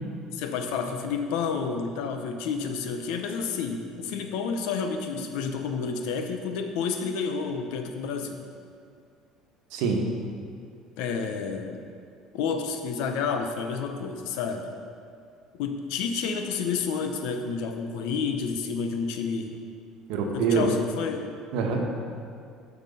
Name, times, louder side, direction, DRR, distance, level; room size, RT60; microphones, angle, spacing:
voice 1, 0.3-8.4 11.0-11.8 12.3-14.7 15.5-19.6 20.3-21.3, left 5 dB, 80° left, 6 dB, 0.8 m, -30 dB
voice 2, 20.1-20.7 21.5-21.8, right 5 dB, 80° right, 2 dB, 1.2 m, -25 dB
7.4 x 6.0 x 5.6 m, 2.3 s
cardioid pair, 150°, 0 cm